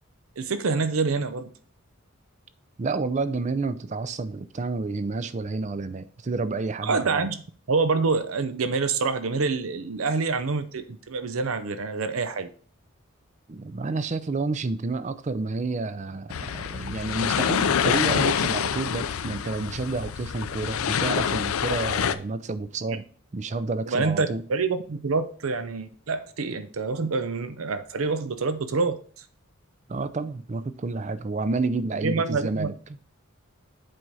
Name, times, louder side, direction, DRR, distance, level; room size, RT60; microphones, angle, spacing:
voice 1, 0.4-1.5 6.8-7.4 7.7-12.5 22.9-23.0 23.9-29.2 32.0-32.7, right 4 dB, 80° right, 0.6 m, -26 dB
voice 2, 2.8-7.3 13.5-23.0 23.3-24.4 29.9-32.7, right 3 dB, 35° right, 0.4 m, -30 dB
sound 1, 16.3-22.2, left 7 dB, 90° left, 0.5 m, -26 dB
7.7 x 4.9 x 4.0 m
head